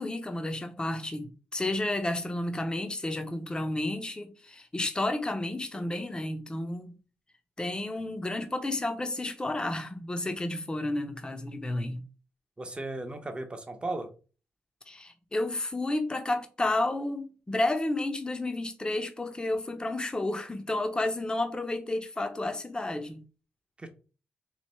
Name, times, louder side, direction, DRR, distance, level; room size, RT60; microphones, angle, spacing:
voice 1, 0.0-6.9 7.6-12.0 14.9-23.2, left 2 dB, 20° left, 0.8 m, -31 dB
voice 2, 12.6-14.1 23.8-23.9, right 2 dB, 25° right, 0.9 m, -36 dB
3.2 x 2.9 x 4.2 m
cardioid pair, 85°, 5 cm